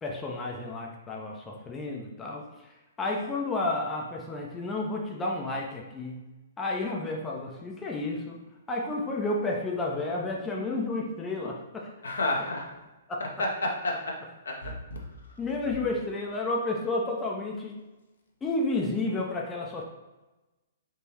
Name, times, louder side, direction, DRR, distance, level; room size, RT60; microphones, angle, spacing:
voice 1, 0.0-6.2 6.6-8.4 8.7-11.9 13.1-13.2 15.4-17.8 18.4-19.8, left 2 dB, 15° left, -1 dB, 0.4 m, -31 dB
voice 2, 12.0-12.7 13.4-14.1 14.5-15.0, left 2 dB, 70° left, 0 dB, 0.7 m, -30 dB
3.7 x 2.9 x 2.9 m, 1.1 s
figure-of-eight pair, 115°, 0 cm